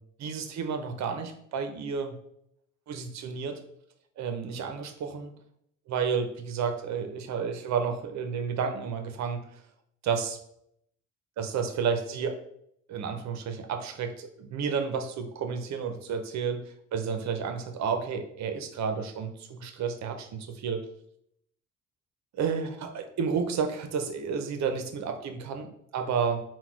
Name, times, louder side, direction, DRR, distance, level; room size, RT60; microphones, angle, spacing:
voice 1, 0.2-2.1 2.9-3.6 4.2-5.3 5.9-9.4 10.0-10.4 11.4-12.4 12.9-16.6 16.9-20.8 22.3-26.4, right 6 dB, 65° right, 6 dB, 0.7 m, -31 dB
4.0 x 2.3 x 4.5 m, 0.73 s
cardioid pair, 90°, 30 cm